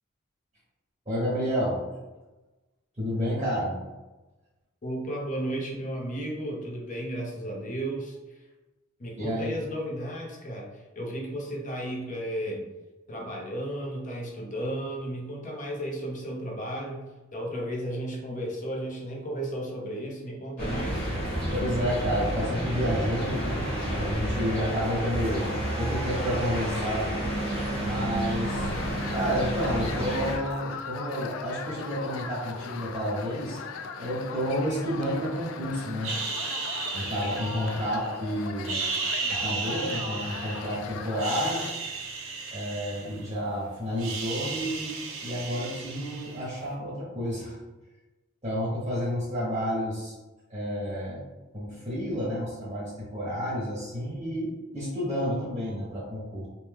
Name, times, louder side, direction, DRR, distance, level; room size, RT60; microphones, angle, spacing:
voice 1, 1.1-1.8 3.0-3.8 9.2-9.5 21.5-27.1 27.8-28.7 29.1-33.6 34.0-36.1 36.9-38.8 39.3-41.6 42.5-44.9 45.2-47.5 48.4-50.1 50.5-51.2 51.5-56.5, equal, 25° right, -8 dB, 1.1 m, -30 dB
voice 2, 4.8-8.2 9.0-12.7 13.1-21.1, right 1 dB, 40° left, -1 dB, 0.7 m, -34 dB
sound 1, 20.6-30.4, right 1 dB, 5° left, 1.0 m, -30 dB
sound 2, 28.5-41.7, left 5 dB, 80° left, 0.3 m, -39 dB
sound 3, 36.0-38.2 38.6-40.8 41.1-43.5 43.8-46.6, right 4 dB, 75° right, 0.5 m, -34 dB
2.9 x 2.2 x 3.4 m, 1.1 s
head